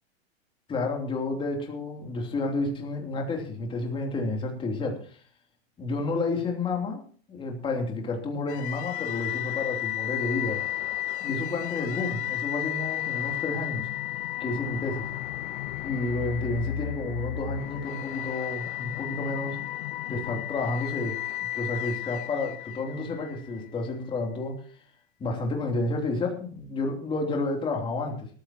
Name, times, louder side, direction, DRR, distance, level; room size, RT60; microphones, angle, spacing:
voice 1, 0.7-5.2 5.8-7.0 7.3-10.6 11.2-13.9 14.4-15.1 15.8-19.6 20.1-21.2 21.5-24.5 25.2-28.3, left 3 dB, 15° left, 1 dB, 3.2 m, -30 dB
sound 1, 8.5-23.6, left 14 dB, 55° left, 1.2 m, -33 dB
19.5 x 14.0 x 3.0 m, 0.43 s
hypercardioid pair, 145°, 32 cm